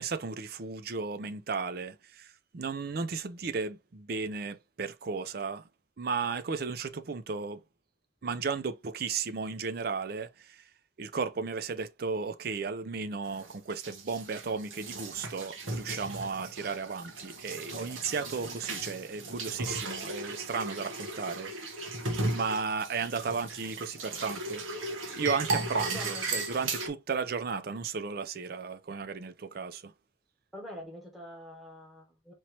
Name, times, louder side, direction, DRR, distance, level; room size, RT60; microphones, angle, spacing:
voice 1, 0.0-5.6 6.0-7.6 8.2-10.6 11.0-21.5 22.3-24.6 25.1-29.9, right 5 dB, 50° right, 0.5 m, -34 dB
sound 1, 13.2-26.9, right 2 dB, 90° right, 1.1 m, -36 dB
voice 2, 25.9-26.3 30.5-32.3, equal, ahead, 1.3 m, -45 dB
4.5 x 3.0 x 2.8 m
head